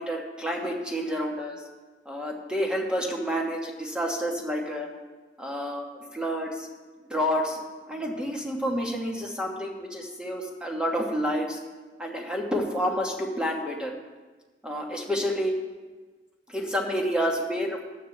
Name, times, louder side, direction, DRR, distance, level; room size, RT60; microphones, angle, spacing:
voice 1, 0.0-1.6 2.0-4.9 5.4-6.7 7.1-11.6 12.0-13.9 14.6-15.5 16.5-17.8, equal, 5° right, 0 dB, 1.3 m, -29 dB
14.5 x 9.6 x 3.4 m, 1.3 s
head